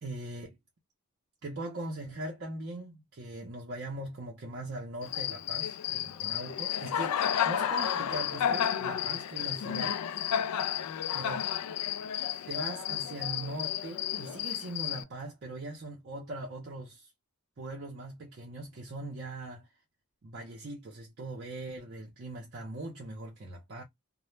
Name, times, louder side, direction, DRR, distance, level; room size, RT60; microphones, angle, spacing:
voice 1, 0.0-0.6 1.4-10.0 11.1-11.4 12.5-17.1 17.6-19.7 20.2-23.8, right 2 dB, 45° right, 0.5 m, -40 dB
Cricket, 5.0-15.0, left 9 dB, 90° left, 0.3 m, -32 dB
2.0 x 2.0 x 3.0 m
head